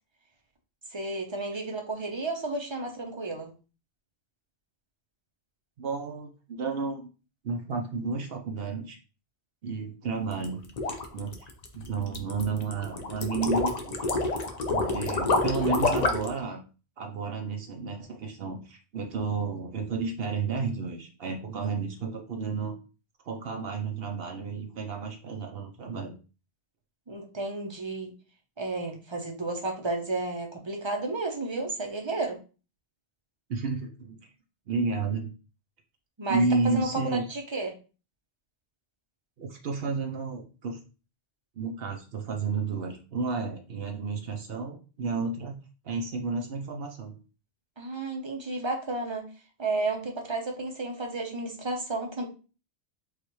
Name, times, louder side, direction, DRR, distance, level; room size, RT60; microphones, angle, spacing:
voice 1, 0.9-3.5 14.9-15.0 15.3-15.8 27.1-28.2 28.6-32.4 36.2-37.0 37.3-37.8 47.8-49.3 49.6-52.3, right 2 dB, 30° right, 3 dB, 0.7 m, -32 dB
voice 2, 5.8-7.1 7.4-9.0 9.6-10.6 11.1-14.1 14.7-16.6 17.0-22.8 23.2-26.1 33.5-34.2 34.7-35.3 36.3-37.2 39.4-40.8 41.6-45.6 45.8-47.2, right 4 dB, 65° right, 2 dB, 0.9 m, -31 dB
sound 1, 10.3-16.4, left 3 dB, 45° left, 0.7 m, -28 dB
4.8 x 2.5 x 3.0 m, 0.34 s
omnidirectional pair, 1.1 m